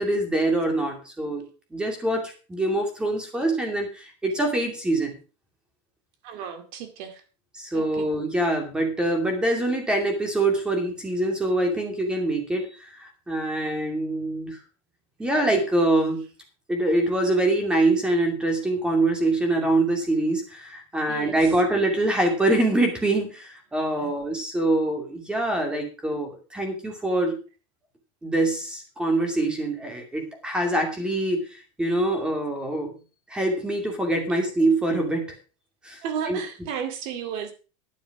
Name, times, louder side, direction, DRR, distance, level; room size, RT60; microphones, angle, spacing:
voice 1, 0.0-1.4 1.7-5.2 7.6-14.6 15.2-16.3 16.7-27.4 28.2-32.9 33.3-35.3 35.8-36.0 36.3-36.7, right 2 dB, 5° right, 2.5 m, -24 dB
voice 2, 6.2-7.2 7.7-8.0 21.1-21.4 24.0-24.1 36.0-37.5, right 8 dB, 45° right, 2.2 m, -33 dB
11.0 x 9.2 x 4.8 m
supercardioid pair, 180°, 14 cm